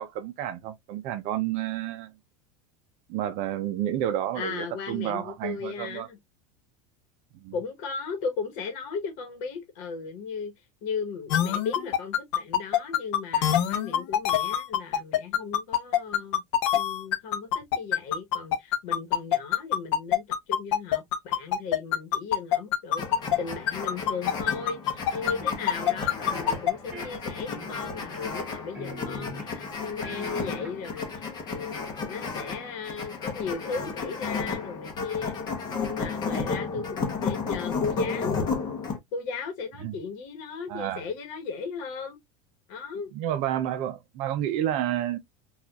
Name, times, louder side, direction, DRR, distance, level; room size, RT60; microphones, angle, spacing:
voice 1, 0.0-2.1 3.1-6.1 7.4-7.5 39.8-40.0 40.7-41.0 43.1-45.2, right 11 dB, 45° right, 0.5 m, -30 dB
voice 2, 4.3-6.2 7.5-10.5 10.8-16.4 16.7-23.1 23.4-35.3 35.8-38.4 39.1-42.2 42.7-43.1, left 5 dB, 50° left, 1.1 m, -36 dB
sound 1, 11.3-23.4 23.7-26.7, left 10 dB, 65° left, 0.7 m, -24 dB
sound 2, 23.0-39.0, left 4 dB, 25° left, 0.8 m, -33 dB
sound 3, 25.1-25.8 26.3-26.6 26.9-28.5 28.7-29.7 30.0-31.0, left 1 dB, 10° right, 0.8 m, -42 dB
4.1 x 2.4 x 2.3 m
supercardioid pair, 160°, 16 cm